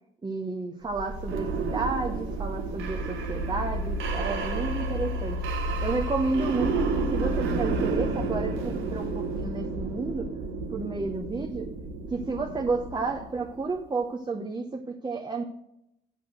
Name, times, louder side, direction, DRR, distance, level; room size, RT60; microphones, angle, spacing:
voice 1, 0.2-5.4 5.8-10.3 10.7-11.7 12.1-15.4, right 3 dB, 20° right, 1 dB, 0.9 m, -31 dB
sound 1, 0.9-13.7, right 3 dB, 90° right, 1.3 m, -30 dB
8.3 x 5.8 x 6.4 m, 0.82 s
cardioid pair, 90°, 20 cm